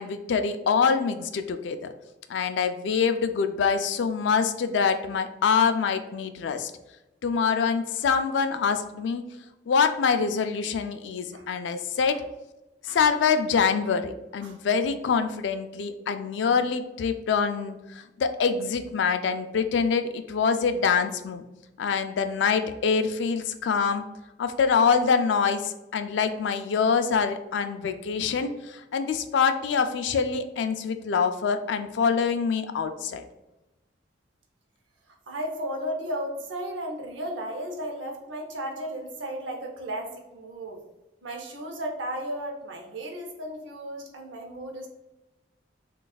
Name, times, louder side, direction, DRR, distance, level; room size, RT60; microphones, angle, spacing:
voice 1, 0.0-1.9 2.3-6.7 7.2-9.3 9.7-12.2 12.8-21.4 21.8-24.0 24.4-33.2, left 6 dB, 75° left, 9 dB, 0.3 m, -25 dB
voice 2, 35.3-40.8 41.2-44.9, equal, 80° right, 2 dB, 0.7 m, -34 dB
4.0 x 2.4 x 2.3 m, 0.99 s
head